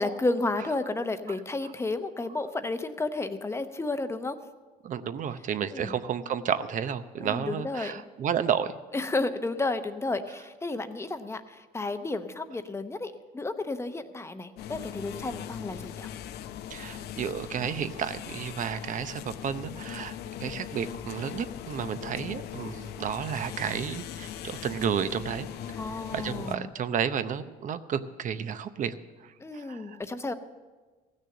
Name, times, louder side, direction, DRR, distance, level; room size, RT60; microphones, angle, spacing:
voice 1, 0.0-4.4 5.7-5.9 7.2-8.1 8.9-16.1 25.8-26.7 29.4-30.3, left 2 dB, 15° left, 9 dB, 0.8 m, -32 dB
voice 2, 4.8-8.7 16.7-25.5 26.1-28.9 29.2-30.0, right 8 dB, 50° right, 12 dB, 0.7 m, -32 dB
sound 1, 14.6-26.6, left 10 dB, 75° left, 0.6 m, -40 dB
15.5 x 6.6 x 7.7 m, 1.3 s
cardioid pair, 110°, 17 cm